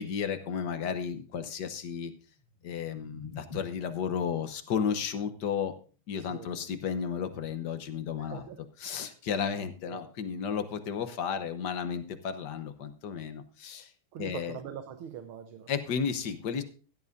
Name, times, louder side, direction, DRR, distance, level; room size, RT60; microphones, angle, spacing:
voice 1, 0.0-2.1 2.6-5.7 6.1-8.5 8.8-13.9 14.2-14.6 15.7-16.6, left 7 dB, 60° left, 9 dB, 1.4 m, -33 dB
sound 1, 2.3-8.4, left 3 dB, 30° left, 2.1 m, -52 dB
voice 2, 6.2-6.5 8.2-8.6 9.9-10.0 14.1-15.7, right 9 dB, 75° right, 8 dB, 1.7 m, -42 dB
16.0 x 12.0 x 2.6 m, 0.37 s
omnidirectional pair, 2.4 m